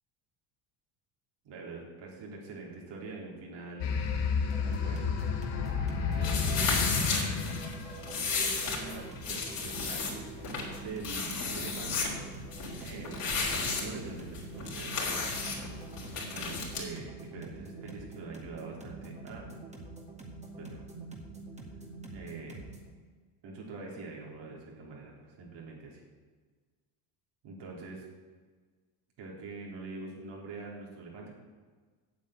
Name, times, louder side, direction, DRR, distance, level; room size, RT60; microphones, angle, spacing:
voice 1, 1.4-3.9 4.6-5.1 5.5-5.6 6.1-6.9 8.3-10.3 10.8-12.1 12.7-14.9 15.9-19.5 20.6-20.8 22.1-22.6 23.4-26.0 27.4-28.1 29.2-31.3, right 3 dB, 65° right, -2 dB, 3.8 m, -44 dB
sound 1, 3.8-8.7, left 5 dB, 65° left, 1.8 m, -31 dB
sound 2, 4.5-22.9, right 2 dB, 15° right, 2.1 m, -46 dB
sound 3, 6.2-16.8, left 4 dB, 50° left, 3.8 m, -34 dB
8.5 x 7.4 x 8.9 m, 1.5 s
cardioid pair, 115°, 45 cm